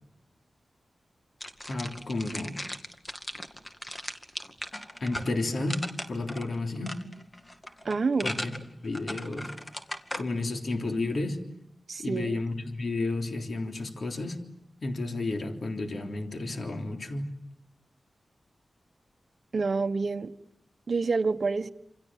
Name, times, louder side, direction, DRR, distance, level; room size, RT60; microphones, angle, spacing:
sound 1, 1.4-10.2, left 1 dB, 20° left, 2.3 m, -38 dB
voice 1, 1.7-2.6 5.0-7.0 8.2-9.5 10.2-11.4 12.0-14.4 14.8-17.3, left 2 dB, 65° left, 3.5 m, -32 dB
voice 2, 7.8-8.3 11.9-12.3 19.5-20.3 20.9-21.7, right 4 dB, 60° right, 1.2 m, -27 dB
28.0 x 27.5 x 7.5 m
wide cardioid pair, 70°, 0 cm